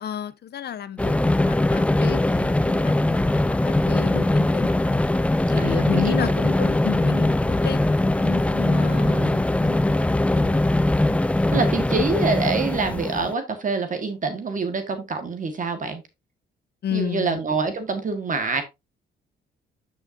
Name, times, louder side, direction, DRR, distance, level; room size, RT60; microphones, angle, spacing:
voice 1, 0.0-4.7 5.5-7.8 8.2-10.6 16.8-17.4, left 9 dB, 55° left, 0.8 m, -32 dB
sound 1, 1.0-13.3, left 1 dB, 5° left, 0.5 m, -21 dB
voice 2, 5.6-6.7 8.9-9.3 11.5-16.0 16.9-18.6, right 4 dB, 40° right, 1.7 m, -26 dB
9.7 x 5.8 x 2.7 m
cardioid pair, 90°, 20 cm